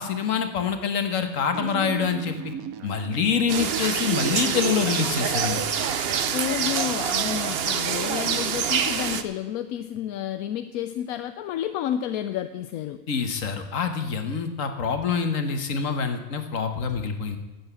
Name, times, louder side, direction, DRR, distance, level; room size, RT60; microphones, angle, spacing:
voice 1, 0.0-2.3 2.8-5.7 13.1-17.4, left 6 dB, 65° left, 7 dB, 1.6 m, -26 dB
sound 1, 1.5-5.5, right 10 dB, 85° right, 1.1 m, -35 dB
sound 2, 3.5-9.2, right 7 dB, 50° right, 0.9 m, -26 dB
voice 2, 6.3-13.0, left 10 dB, 85° left, 10 dB, 1.0 m, -30 dB
12.5 x 8.0 x 8.0 m, 1.1 s
omnidirectional pair, 1.5 m